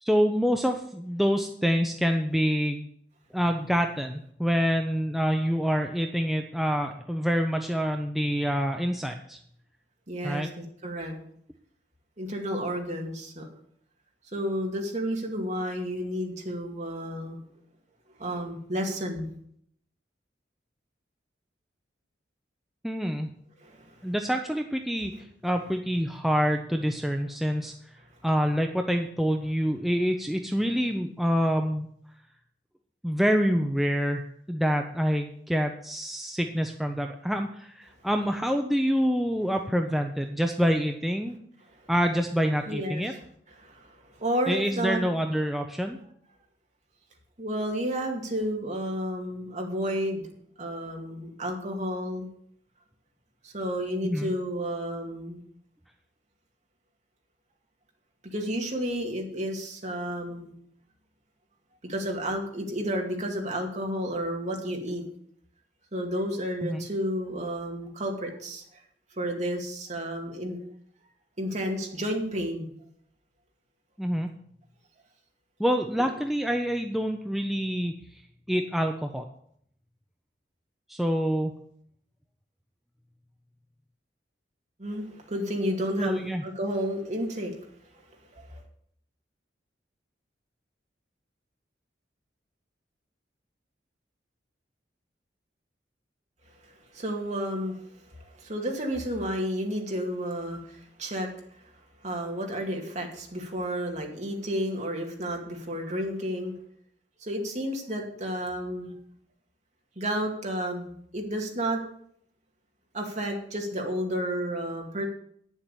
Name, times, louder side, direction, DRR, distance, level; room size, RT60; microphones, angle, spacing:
voice 1, 0.0-2.8 3.3-9.4 10.2-10.5 22.8-23.3 24.0-25.1 25.4-27.7 28.2-31.9 33.0-34.2 34.5-41.4 41.9-43.1 44.5-46.0 54.0-54.3 66.6-66.8 74.0-74.3 75.6-77.9 78.5-79.2 80.9-81.5 86.0-86.4, equal, ahead, 4 dB, 0.6 m, -26 dB
voice 2, 10.1-11.1 12.2-13.5 14.3-17.4 18.2-19.3 23.6-24.1 42.7-43.0 43.6-45.0 47.4-50.2 50.6-52.3 53.4-55.4 58.3-60.5 61.8-65.0 65.9-68.6 69.2-70.6 71.4-72.7 76.0-76.1 84.8-87.6 88.3-88.6 96.9-97.9 98.1-101.3 102.0-106.5 107.2-108.9 110.0-111.8 112.9-115.1, equal, 40° right, 1 dB, 2.2 m, -31 dB
9.4 x 7.3 x 6.9 m, 0.66 s
head